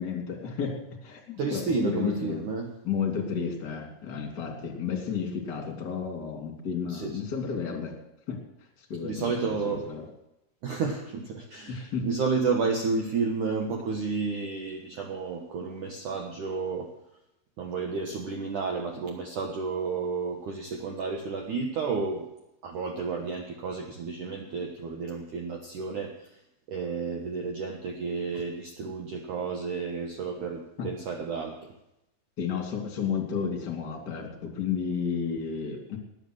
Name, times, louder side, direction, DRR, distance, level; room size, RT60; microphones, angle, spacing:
voice 1, 0.0-1.2 1.5-2.4 2.8-7.9 8.3-8.4 8.8-10.1 11.7-12.1 30.8-30.9 32.4-36.0, left 6 dB, 30° left, 2 dB, 2.4 m, -32 dB
voice 2, 1.4-2.7 6.9-7.2 9.0-9.9 10.6-16.9 17.6-22.3 22.6-26.3 26.7-31.7, right 4 dB, 70° right, 1 dB, 2.0 m, -31 dB
19.5 x 8.6 x 6.5 m, 0.86 s
omnidirectional pair, 5.7 m